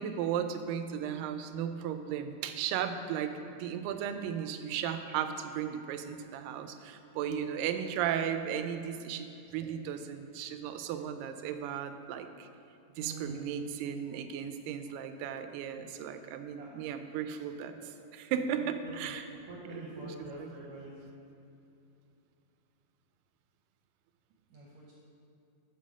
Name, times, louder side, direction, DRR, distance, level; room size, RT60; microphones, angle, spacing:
voice 1, 0.0-9.3 9.5-12.5 13.0-19.2 19.7-20.1 20.4-20.5, right 8 dB, 85° right, 8 dB, 2.2 m, -35 dB
voice 2, 13.0-13.6 16.6-16.7 17.8-18.1 18.6-19.2 19.5-21.1 24.5-24.9, right 2 dB, 70° right, -4 dB, 1.9 m, -45 dB
7.5 x 5.4 x 6.3 m, 2.7 s
omnidirectional pair, 4.0 m